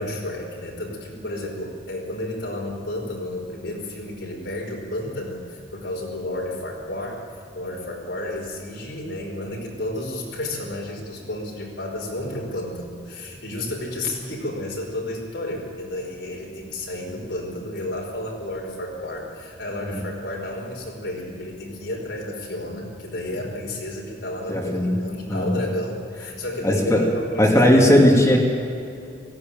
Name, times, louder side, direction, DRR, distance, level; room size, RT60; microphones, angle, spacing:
voice 1, 0.0-7.2 7.5-28.0, left 1 dB, 75° left, 0 dB, 5.0 m, -31 dB
voice 2, 24.5-25.0 25.3-25.5 26.6-27.0 27.4-28.4, left 1 dB, 20° left, -1 dB, 2.5 m, -17 dB
17.5 x 16.0 x 9.2 m, 2.5 s
head